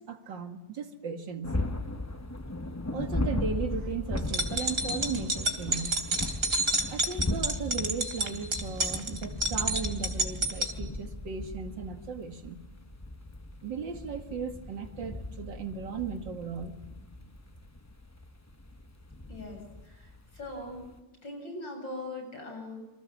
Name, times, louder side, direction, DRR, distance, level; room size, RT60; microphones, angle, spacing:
voice 1, 0.0-1.6 2.9-6.0 6.9-12.6 13.6-16.7, right 5 dB, 75° right, 6 dB, 2.6 m, -36 dB
sound 1, 1.4-21.0, left 2 dB, 15° left, 0.6 m, -37 dB
sound 2, 4.2-10.7, right 1 dB, 50° right, 3.3 m, -30 dB
voice 2, 19.3-20.9 21.2-22.8, left 2 dB, 85° left, 3 dB, 8.4 m, -41 dB
28.0 x 25.5 x 7.3 m, 1.1 s
omnidirectional pair, 2.0 m